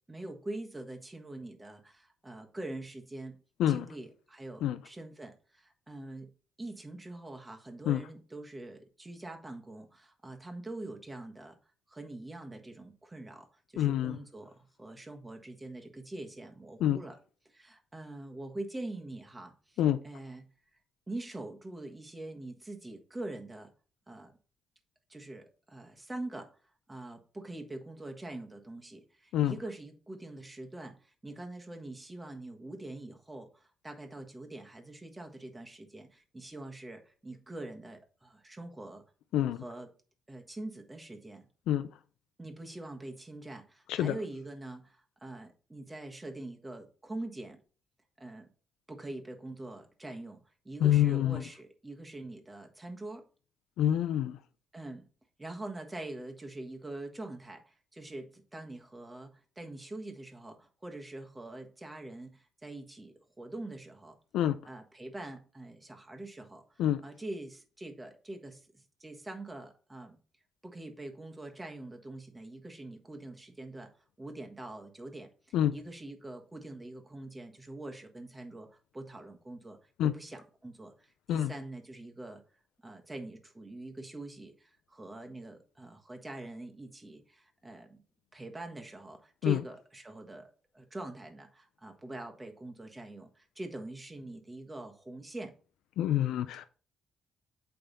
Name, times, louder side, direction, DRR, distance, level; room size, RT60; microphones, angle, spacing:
voice 1, 0.1-3.4 3.7-6.3 6.6-11.6 11.9-17.2 17.4-20.5 21.1-23.7 24.1-24.3 25.1-26.5 26.9-39.0 39.6-39.9 40.3-41.5 42.4-47.6 48.2-48.5 48.9-53.2 54.7-55.1 55.4-64.2 64.7-70.2 70.6-73.9 74.2-82.4 82.8-88.0 88.3-95.5 96.5-96.6, right 2 dB, 15° right, 1.4 m, -44 dB
voice 2, 13.8-14.2 16.8-17.0 19.8-20.0 29.3-29.6 39.3-39.6 41.7-41.9 43.9-44.1 50.8-51.4 53.8-54.4 64.3-64.6 66.8-67.0 75.5-75.7 80.0-80.1 81.3-81.5 89.4-89.6 96.0-96.6, left 11 dB, 85° left, 0.4 m, -26 dB
8.7 x 3.5 x 4.1 m
cardioid pair, 90°, 0 cm